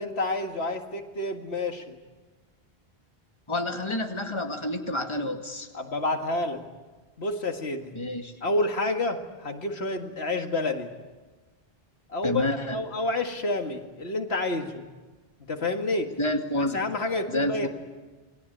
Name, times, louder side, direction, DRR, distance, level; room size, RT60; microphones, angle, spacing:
voice 1, 0.0-2.0 5.7-6.6 7.2-7.9 8.4-10.9 12.1-14.9 15.5-16.2 16.6-17.7, left 2 dB, 85° left, 4 dB, 2.2 m, -29 dB
voice 2, 3.5-5.7 7.9-8.3 12.2-12.8 16.2-16.8 17.3-17.7, left 1 dB, 25° left, 3 dB, 2.2 m, -29 dB
28.5 x 22.5 x 8.8 m, 1.3 s
omnidirectional pair, 1.1 m